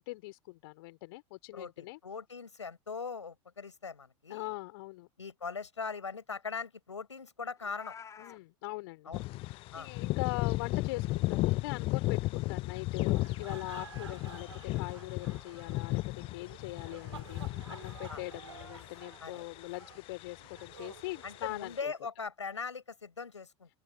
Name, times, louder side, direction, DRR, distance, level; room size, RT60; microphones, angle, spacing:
voice 1, 0.0-2.0 4.3-5.1 8.2-14.5 14.7-21.9, left 21 dB, 55° left, 3.0 m, -42 dB
voice 2, 1.5-4.5 5.2-8.0 9.1-9.3 9.7-9.9 18.1-18.2 19.2-19.5 21.2-23.7, left 5 dB, 80° left, 6.1 m, -40 dB
Meow, 7.6-8.4, left 7 dB, 20° left, 2.3 m, -49 dB
sound 1, 9.1-19.8 20.1-21.7, left 20 dB, 35° left, 0.5 m, -35 dB
sound 2, 13.0-22.0, right 7 dB, 75° right, 3.2 m, -52 dB
open air
figure-of-eight pair, 80°, 15 cm